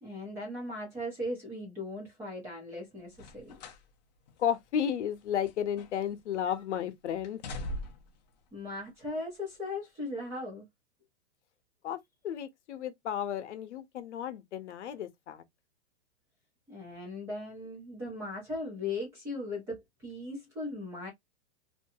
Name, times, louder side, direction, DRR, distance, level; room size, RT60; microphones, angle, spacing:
voice 1, 0.0-3.6 8.5-10.6 16.7-21.1, left 2 dB, 5° right, 0.6 m, -38 dB
sound 1, 3.1-3.9 4.3-4.4 5.1-6.2 6.5-6.8 7.2-8.2 9.0-9.2, left 1 dB, 40° left, 0.5 m, -42 dB
voice 2, 4.4-7.4 11.8-12.0 12.2-15.4, left 9 dB, 80° left, 0.8 m, -33 dB
2.6 x 2.2 x 2.6 m
supercardioid pair, 175°, 35 cm